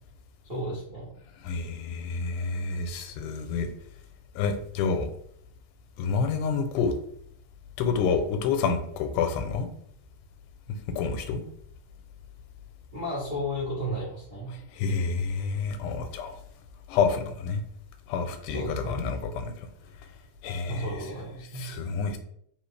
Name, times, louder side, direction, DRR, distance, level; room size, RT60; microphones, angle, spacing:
voice 1, 0.4-1.1 12.9-14.5 18.5-19.0 20.7-21.7, equal, 90° right, -8 dB, 0.5 m, -33 dB
voice 2, 1.4-3.7 4.4-5.1 6.0-6.9 7.8-9.7 10.9-11.4 14.7-16.4 16.9-17.6 18.1-19.7 20.4-20.9 21.6-22.2, left 5 dB, 85° left, 6 dB, 2.1 m, -28 dB
4.4 x 3.4 x 3.2 m, 0.68 s
omnidirectional pair, 3.6 m